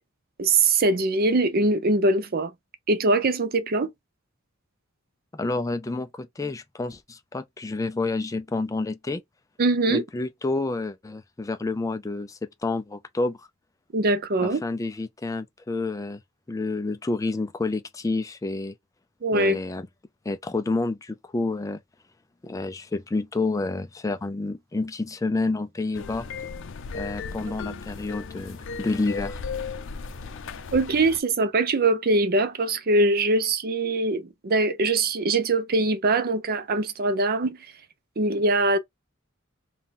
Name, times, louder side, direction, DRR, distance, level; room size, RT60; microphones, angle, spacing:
voice 1, 0.4-2.5 2.9-3.9 9.6-10.0 13.9-14.6 19.2-19.6 30.7-37.6 38.2-38.8, right 2 dB, 50° right, 0.6 m, -22 dB
voice 2, 5.3-9.2 9.9-13.5 14.4-16.2 16.5-18.7 19.3-19.9 20.3-21.8 22.4-26.3 26.9-29.4, left 3 dB, 15° left, 0.3 m, -29 dB
sound 1, 25.9-31.2, left 5 dB, 65° left, 0.5 m, -36 dB
3.6 x 2.3 x 4.0 m
head